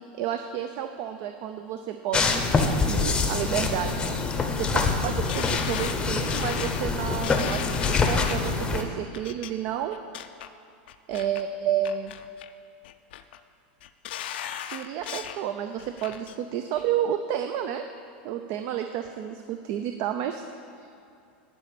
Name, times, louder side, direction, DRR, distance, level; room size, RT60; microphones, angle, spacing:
voice 1, 0.2-4.2 4.6-10.0 11.1-12.1 14.6-17.8 18.2-20.4, right 10 dB, 50° right, 7 dB, 0.4 m, -31 dB
sound 1, 2.1-8.8, left 4 dB, 15° left, 0.7 m, -25 dB
sound 2, 5.3-8.5 9.1-9.5 9.9-10.5 10.9-11.4 11.8-12.5 12.8-13.4 13.8-15.4 15.8-16.4 16.8-16.9, left 10 dB, 80° left, 0.4 m, -37 dB
11.5 x 4.2 x 6.9 m, 2.6 s
supercardioid pair, 140°, 6 cm